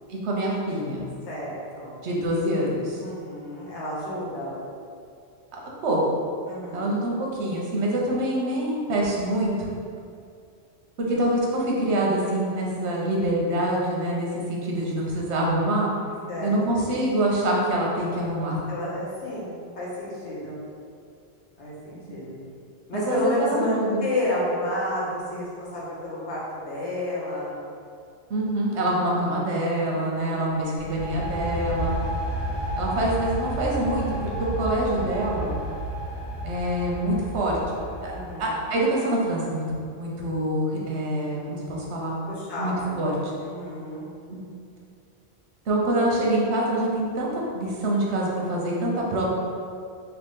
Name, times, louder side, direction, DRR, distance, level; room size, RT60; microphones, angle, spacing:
voice 1, 0.1-1.0 2.0-3.0 5.8-6.2 6.7-9.8 11.0-15.9 16.4-18.6 22.9-24.1 28.3-31.9 32.7-35.5 36.4-37.6 38.0-39.6 40.0-42.2 42.6-43.3 44.3-44.5 45.7-49.2, right 1 dB, 80° right, -3 dB, 1.0 m, -25 dB
voice 2, 1.3-2.0 3.0-4.6 6.5-6.9 16.3-16.8 18.7-20.6 21.6-22.4 22.9-27.6 30.2-30.9 38.1-38.5 42.3-43.0 43.4-44.1, left 1 dB, 85° left, -6 dB, 1.2 m, -31 dB
sound 1, 30.8-38.5, right 1 dB, 45° left, 1.6 m, -31 dB
2.9 x 2.9 x 3.5 m, 2.4 s
omnidirectional pair, 1.1 m